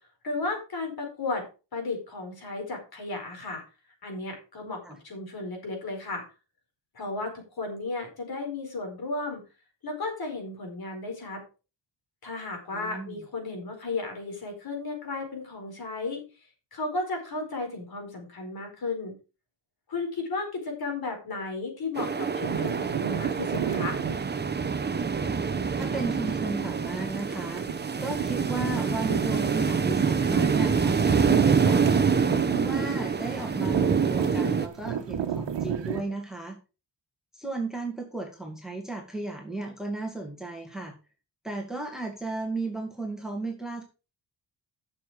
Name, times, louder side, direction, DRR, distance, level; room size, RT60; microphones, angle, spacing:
voice 1, 0.2-1.5 1.7-3.6 4.0-6.2 6.9-9.4 9.8-11.4 12.2-16.2 16.7-19.1 19.9-24.0, left 3 dB, 55° left, 3 dB, 4.7 m, -34 dB
voice 2, 12.7-13.2 25.8-27.7 28.0-31.9 32.5-36.6 37.3-40.9 41.4-43.8, right 2 dB, ahead, 1 dB, 2.1 m, -34 dB
sound 1, 22.0-34.7, right 5 dB, 25° right, 0.8 m, -26 dB
sound 2, 22.4-36.0, right 8 dB, 70° right, 1.4 m, -33 dB
12.0 x 7.0 x 4.8 m, 0.32 s
wide cardioid pair, 165°, 45 cm